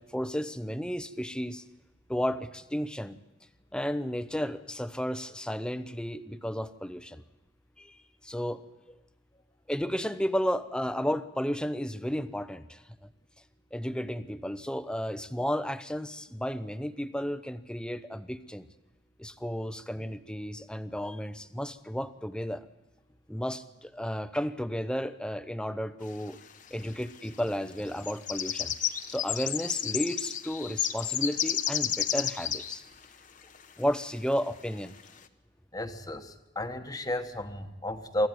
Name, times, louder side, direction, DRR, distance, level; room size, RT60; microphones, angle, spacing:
voice 1, 0.0-1.6 2.1-3.2 3.7-7.2 7.8-8.6 9.7-12.8 13.7-18.7 19.2-22.7 23.3-26.4 26.7-28.7 29.1-32.8 33.8-34.9, equal, 5° left, 12 dB, 0.8 m, -33 dB
sound 1, 26.4-26.5 27.3-27.5 27.8-32.8 33.0-33.1 33.5-33.6 34.4-34.5 35.0-35.2, left 9 dB, 45° left, 1.0 m, -31 dB
voice 2, 35.7-38.3, left 1 dB, 20° left, 7 dB, 1.2 m, -33 dB
24.5 x 14.5 x 9.4 m, 1.1 s
head